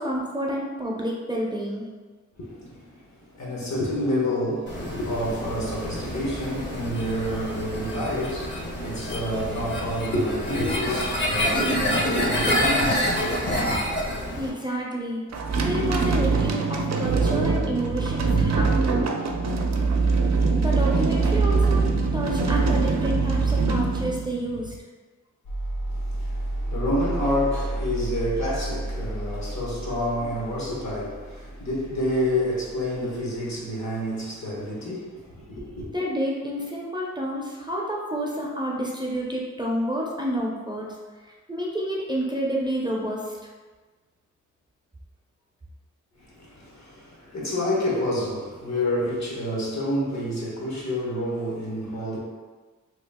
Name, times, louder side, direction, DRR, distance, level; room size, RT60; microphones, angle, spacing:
voice 1, 0.0-1.8 14.4-15.2 15.6-19.1 20.5-21.9 22.1-24.7 35.9-40.9 41.2-43.4, right 1 dB, 15° right, 0.5 m, -29 dB
voice 2, 2.4-13.8 25.9-35.9 46.2-52.2, left 1 dB, 60° left, 1.1 m, -29 dB
sound 1, 4.7-14.5, equal, 35° left, 0.8 m, -27 dB
sound 2, 15.3-24.8, right 4 dB, 60° right, 0.5 m, -23 dB
sound 3, 25.4-33.6, right 1 dB, 80° left, 0.6 m, -32 dB
2.9 x 2.3 x 3.5 m
wide cardioid pair, 75°, 30 cm